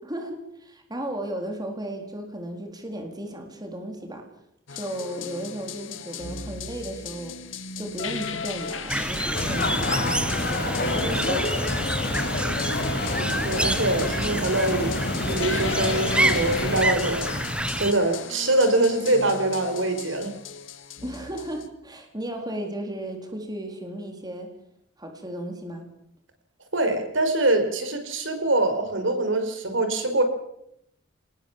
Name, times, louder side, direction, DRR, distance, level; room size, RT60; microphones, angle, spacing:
voice 1, 0.0-4.3 4.7-7.4 7.8-11.4 11.9-12.3 21.0-24.5 25.0-25.9, right 1 dB, 20° right, 4 dB, 4.2 m, -35 dB
sound 1, 4.7-21.7, left 5 dB, 85° left, 2.3 m, -37 dB
sound 2, 8.9-17.9, right 1 dB, 5° right, 1.1 m, -28 dB
sound 3, 9.3-16.9, left 2 dB, 55° left, 5.2 m, -28 dB
voice 2, 10.9-11.4 13.2-15.0 15.3-17.3 17.8-20.3 26.7-30.2, right 2 dB, 75° right, 7 dB, 4.8 m, -24 dB
26.0 x 20.0 x 7.4 m, 0.76 s
head